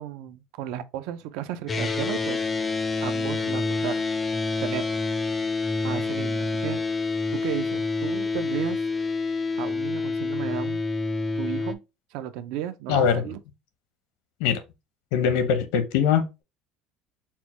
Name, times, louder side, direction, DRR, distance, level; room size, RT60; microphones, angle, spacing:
voice 1, 0.0-2.7 3.0-4.0 4.6-5.0 5.8-6.8 7.3-8.9 9.6-10.8 11.4-11.8 12.1-13.4, right 11 dB, 65° right, 0.5 m, -34 dB
sound 1, 1.7-11.7, left 3 dB, 15° left, 0.4 m, -27 dB
voice 2, 12.9-13.2 14.4-14.6 15.1-16.4, left 7 dB, 85° left, 0.9 m, -22 dB
4.4 x 2.2 x 4.2 m
cardioid pair, 175°, 0 cm